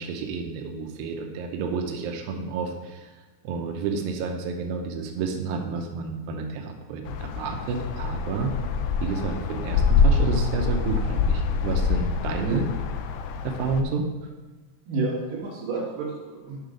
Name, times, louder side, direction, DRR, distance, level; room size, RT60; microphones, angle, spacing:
voice 1, 0.0-3.1 3.4-8.5 9.0-12.7 13.4-14.1, right 4 dB, 90° right, 3 dB, 2.0 m, -30 dB
sound 1, 7.1-13.8, left 5 dB, 85° left, 2.2 m, -25 dB
voice 2, 14.9-16.6, right 3 dB, 55° right, -6 dB, 3.3 m, -30 dB
9.2 x 3.7 x 5.0 m, 1.2 s
omnidirectional pair, 5.0 m